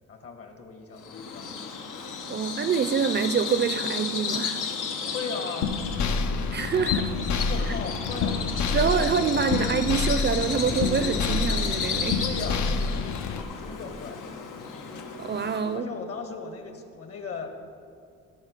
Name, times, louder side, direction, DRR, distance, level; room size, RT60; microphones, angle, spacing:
voice 1, 0.1-1.5 5.0-5.7 7.5-8.5 12.2-12.7 13.6-14.2 15.7-17.6, left 5 dB, 50° left, 5 dB, 1.5 m, -37 dB
Bird vocalization bird call bird song, 1.0-15.8, left 5 dB, 90° left, 1.2 m, -33 dB
voice 2, 2.3-4.6 6.5-7.1 8.7-12.2 15.2-15.9, right 6 dB, 35° right, 11 dB, 0.5 m, -26 dB
sound 1, 5.6-13.4, left 4 dB, 65° left, 0.7 m, -28 dB
sound 2, 10.4-15.6, left 2 dB, 35° left, 0.8 m, -44 dB
16.0 x 5.5 x 6.6 m, 2.3 s
cardioid pair, 120°, 30 cm